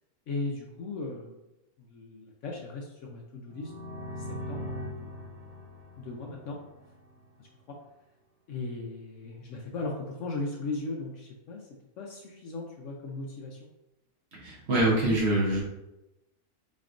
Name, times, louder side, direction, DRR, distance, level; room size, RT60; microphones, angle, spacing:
voice 1, 0.3-1.4 1.8-3.7 4.2-5.4 6.0-6.6 7.4-7.8 8.5-11.7 12.0-13.7, left 3 dB, 65° left, -1 dB, 0.8 m, -37 dB
sound 1, 3.5-7.2, left 1 dB, 90° right, 1.4 m, -40 dB
voice 2, 14.3-15.6, right 1 dB, 50° right, -4 dB, 1.1 m, -25 dB
4.2 x 3.1 x 2.5 m, 0.93 s
omnidirectional pair, 1.6 m